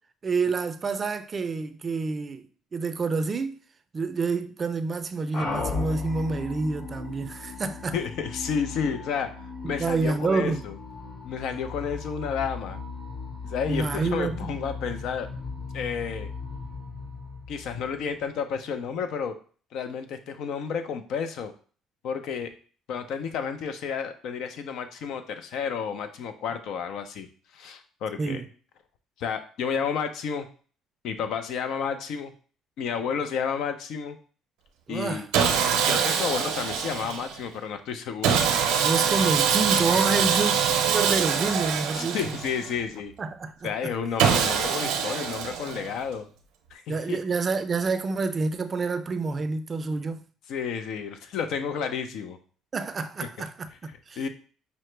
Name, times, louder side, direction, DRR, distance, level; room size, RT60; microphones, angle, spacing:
voice 1, 0.2-2.4 2.7-3.6 3.9-7.9 9.6-10.6 13.7-14.6 28.2-28.5 34.9-35.3 38.8-40.5 40.9-42.4 43.2-43.7 46.9-50.2 52.7-54.2, right 4 dB, 35° right, 0.4 m, -28 dB
sound 1, 5.3-18.2, left 4 dB, 45° left, 1.9 m, -37 dB
voice 2, 7.9-9.3 9.6-10.8 11.2-12.8 13.4-15.3 15.7-16.3 17.5-19.3 19.7-21.5 22.0-22.5 22.9-27.3 27.5-28.4 29.2-30.5 31.0-32.3 32.8-34.2 34.9-35.3 35.9-38.4 41.9-43.1 43.6-46.3 46.7-47.2 50.5-52.4 54.2-54.3, left 6 dB, 70° left, 0.5 m, -31 dB
Sawing, 35.3-37.4 38.2-42.8 44.2-46.0, right 7 dB, 85° right, 0.6 m, -24 dB
5.5 x 2.0 x 3.2 m
supercardioid pair, 85°, 0 cm